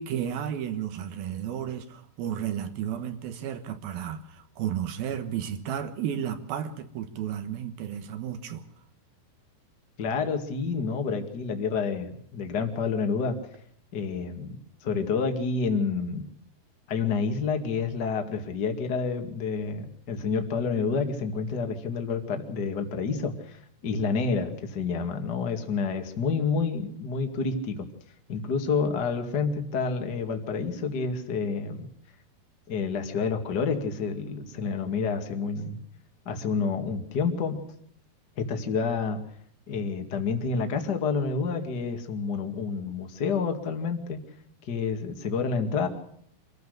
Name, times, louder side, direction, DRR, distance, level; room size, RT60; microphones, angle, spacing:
voice 1, 0.0-8.6, right 9 dB, 70° right, 3.0 m, -33 dB
voice 2, 10.0-13.4 13.9-16.3 16.9-27.9 28.3-31.9 32.7-35.8 36.3-37.6 38.4-39.2 39.7-44.2 44.7-45.9, left 5 dB, 35° left, 1.9 m, -29 dB
26.0 x 15.5 x 6.6 m
omnidirectional pair, 4.8 m